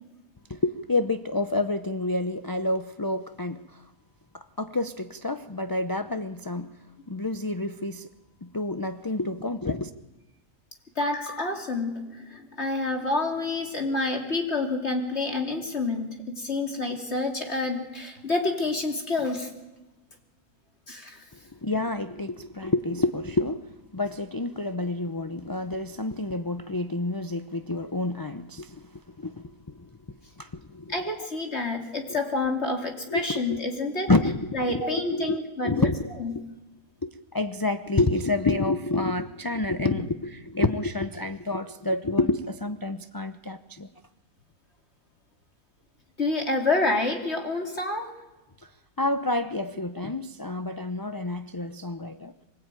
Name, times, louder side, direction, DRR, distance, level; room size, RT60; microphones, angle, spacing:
voice 1, 0.5-3.8 4.3-6.7 7.1-8.1 8.4-9.9 21.6-23.6 23.9-29.9 30.4-30.9 33.1-33.6 34.1-35.4 35.6-36.1 37.0-43.9 49.0-52.3, left 2 dB, 25° left, 8 dB, 0.4 m, -28 dB
voice 2, 11.0-19.5 20.9-21.2 30.9-34.1 34.5-35.9 36.2-36.3 39.9-40.0 46.2-48.1, left 2 dB, 45° left, 2 dB, 3.1 m, -28 dB
23.5 x 20.5 x 9.1 m, 1.1 s
omnidirectional pair, 1.6 m